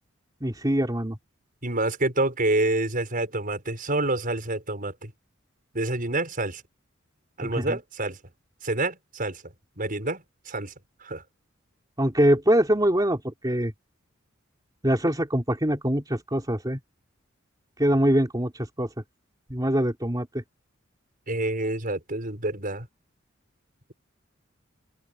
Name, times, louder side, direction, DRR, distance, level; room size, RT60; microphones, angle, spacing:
voice 1, 0.4-1.2 7.5-7.8 12.0-13.7 14.8-16.8 17.8-18.9 19.5-20.4, right 1 dB, 20° right, 3.6 m, -23 dB
voice 2, 1.6-5.1 5.7-6.6 7.4-8.2 8.6-9.4 9.8-10.7 11.0-11.2 21.3-22.9, right 2 dB, 45° right, 6.3 m, -27 dB
open air
head